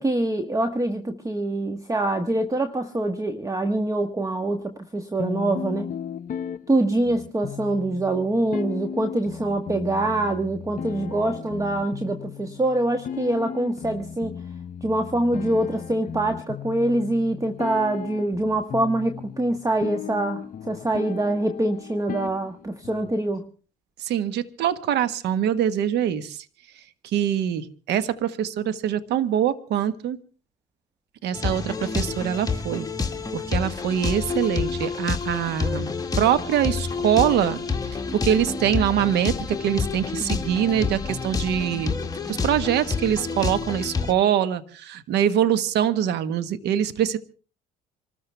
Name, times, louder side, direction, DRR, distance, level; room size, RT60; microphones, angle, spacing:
voice 1, 0.0-5.9 6.7-14.4 14.8-23.4, right 1 dB, 15° right, 8 dB, 1.4 m, -25 dB
sound 1, 5.2-23.2, left 8 dB, 45° left, 0.8 m, -36 dB
voice 2, 24.0-26.4 27.1-30.2 31.2-32.9 33.3-37.6 38.2-42.0 42.3-47.2, right 9 dB, 65° right, 12 dB, 1.4 m, -24 dB
sound 2, 31.3-44.1, left 4 dB, 20° left, 1.8 m, -28 dB
26.5 x 14.0 x 3.4 m, 0.38 s
supercardioid pair, 75°, 19 cm